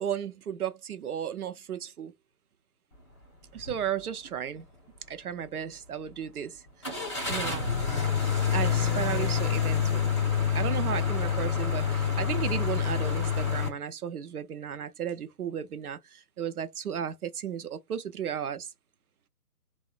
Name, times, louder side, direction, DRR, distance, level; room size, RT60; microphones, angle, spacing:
voice 1, 0.0-2.1 3.5-4.6 5.1-6.6 7.3-7.7 8.5-10.1 10.5-18.7, right 9 dB, 70° right, 0.5 m, -34 dB
sound 1, 3.6-3.8 4.2-4.3 6.8-13.7, left 7 dB, 20° left, 0.6 m, -27 dB
3.0 x 2.0 x 2.3 m
figure-of-eight pair, 155°, 47 cm